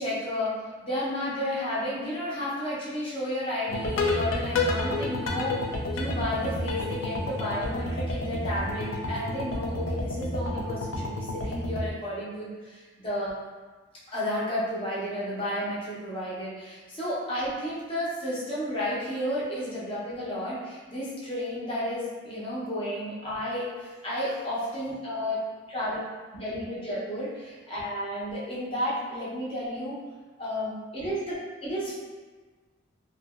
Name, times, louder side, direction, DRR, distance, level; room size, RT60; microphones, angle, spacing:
voice 1, 0.0-5.6 5.9-13.3 14.1-25.4 25.7-26.0 26.3-30.0 30.4-31.4 31.6-32.0, left 1 dB, 30° left, -8 dB, 0.7 m, -32 dB
sound 1, 3.7-11.9, left 2 dB, 85° left, 0.4 m, -30 dB
2.7 x 2.4 x 2.4 m, 1.4 s
head